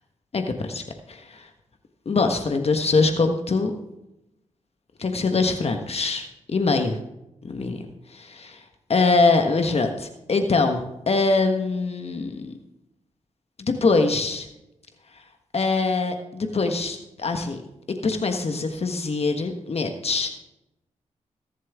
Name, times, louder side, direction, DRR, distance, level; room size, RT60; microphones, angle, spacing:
voice 1, 0.3-0.8 1.1-1.5 2.0-3.7 5.0-7.0 7.4-7.8 8.1-8.6 8.9-12.5 13.6-14.5 15.5-17.6 17.9-20.4, left 3 dB, 50° left, 5 dB, 1.4 m, -23 dB
21.5 x 7.5 x 3.6 m, 0.89 s
cardioid pair, 65°, 13 cm